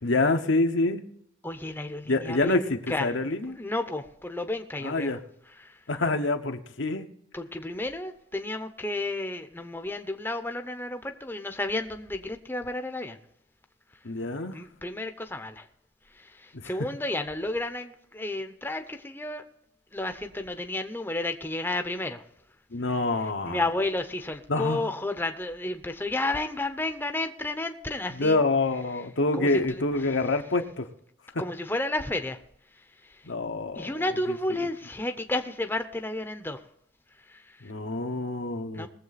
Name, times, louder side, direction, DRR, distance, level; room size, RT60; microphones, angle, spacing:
voice 1, 0.0-1.0 2.1-3.6 4.8-5.2 5.9-7.1 14.0-14.6 16.5-16.9 22.7-23.6 24.5-24.9 28.1-30.9 31.3-31.4 33.2-34.7 37.6-38.9, left 2 dB, 80° left, 5 dB, 1.1 m, -27 dB
voice 2, 1.4-3.1 3.6-5.1 5.6-5.8 7.3-13.2 14.5-15.7 16.2-19.4 19.9-22.2 23.5-28.4 29.3-29.8 31.4-32.4 33.0-33.2 33.8-36.6 37.3-37.6 38.7-38.9, left 2 dB, 10° left, 7 dB, 0.7 m, -32 dB
20.5 x 7.6 x 4.1 m, 0.72 s
head